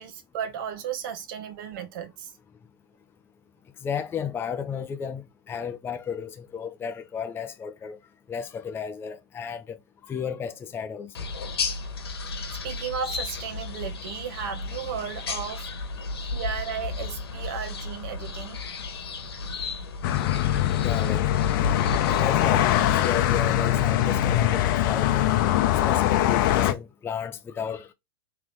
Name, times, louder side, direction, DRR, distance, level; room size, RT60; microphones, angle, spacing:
voice 1, 0.0-2.3 12.6-15.7 16.3-18.6, right 8 dB, 60° right, 1.0 m, -34 dB
voice 2, 3.8-8.0 8.3-9.8 10.1-11.1 15.7-16.1 19.4-19.7 20.0-21.6 22.2-25.3 25.7-27.9, left 7 dB, 20° left, 0.5 m, -34 dB
sound 1, 11.1-23.4, left 3 dB, 85° left, 1.4 m, -34 dB
sound 2, 20.0-26.7, left 12 dB, 55° left, 0.7 m, -22 dB
3.8 x 3.3 x 3.0 m
hypercardioid pair, 110°, 13 cm